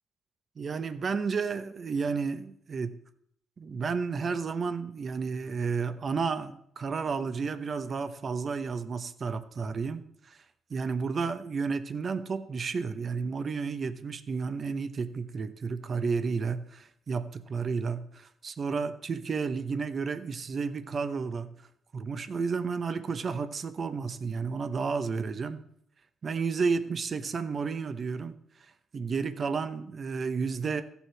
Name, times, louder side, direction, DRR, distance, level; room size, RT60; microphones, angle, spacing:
voice 1, 0.6-2.9 3.6-10.4 10.7-21.5 21.9-25.6 26.2-28.4 28.9-30.8, right 5 dB, 45° right, 0.9 m, -32 dB
14.5 x 7.2 x 4.6 m
cardioid pair, 90°, 0 cm